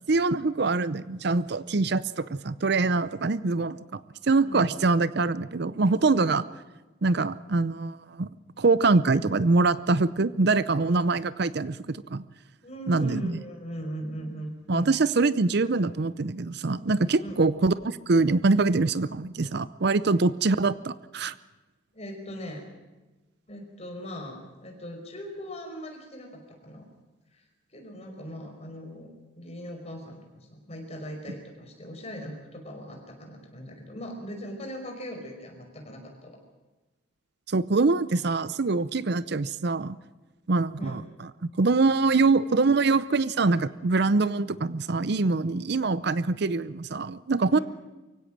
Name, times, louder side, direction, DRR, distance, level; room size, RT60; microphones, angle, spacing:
voice 1, 0.1-6.4 7.0-8.3 8.6-12.2 12.9-13.4 14.7-21.3 37.5-40.0 40.5-41.0 41.6-47.6, right 3 dB, 60° right, 16 dB, 0.6 m, -24 dB
voice 2, 10.8-11.1 12.6-15.0 17.2-17.4 21.9-22.6 23.5-26.9 27.3-27.4 27.7-36.4 40.8-41.0 47.5-47.6, equal, 35° left, 2 dB, 5.2 m, -39 dB
24.0 x 16.5 x 7.5 m, 1.1 s
head